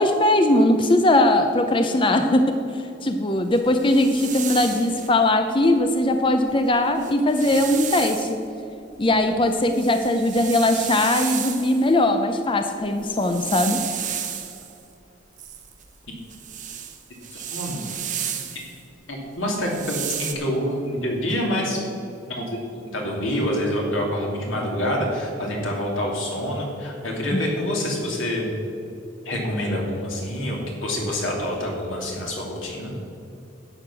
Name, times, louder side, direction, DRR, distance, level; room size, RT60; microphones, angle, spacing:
voice 1, 0.0-2.5 3.0-8.3 9.0-13.8, left 1 dB, 25° left, 6 dB, 0.6 m, -20 dB
sound 1, 3.5-5.1 6.5-6.6 6.9-8.4 8.9-11.9 12.9-14.8 15.4-18.8 19.5-20.3, right 9 dB, 40° right, 1.0 m, -33 dB
voice 2, 17.3-17.8 18.5-18.6 19.1-21.8 22.3-22.6 22.9-28.5 29.2-32.9, equal, 90° left, -1 dB, 2.8 m, -26 dB
11.5 x 8.0 x 6.2 m, 2.7 s
head